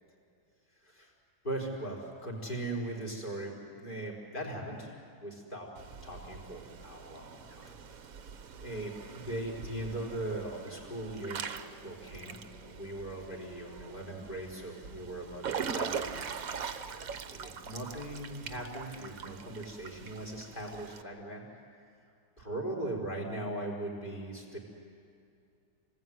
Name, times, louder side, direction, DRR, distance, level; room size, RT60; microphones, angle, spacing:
voice 1, 0.8-1.1 1.4-4.9 5.2-5.7 6.0-7.7 8.1-8.3 8.6-11.4 11.8-12.4 12.6-16.3 16.8-21.4 22.4-24.6, right 1 dB, 25° left, -2 dB, 4.6 m, -39 dB
Water / Splash splatter / Drip, 5.8-21.0, right 6 dB, 55° right, 1.3 m, -42 dB
28.5 x 19.5 x 9.4 m, 2.4 s
omnidirectional pair, 2.0 m